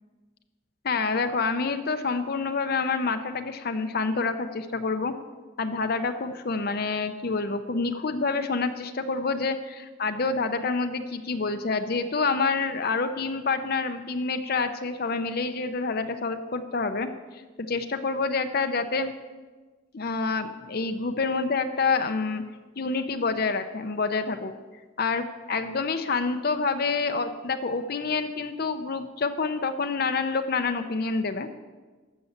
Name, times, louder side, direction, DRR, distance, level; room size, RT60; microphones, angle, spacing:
voice 1, 0.8-5.1 5.6-19.1 19.9-22.4 22.8-24.5 25.0-31.5, left 4 dB, 45° left, 8 dB, 0.6 m, -27 dB
13.0 x 6.9 x 7.9 m, 1.3 s
head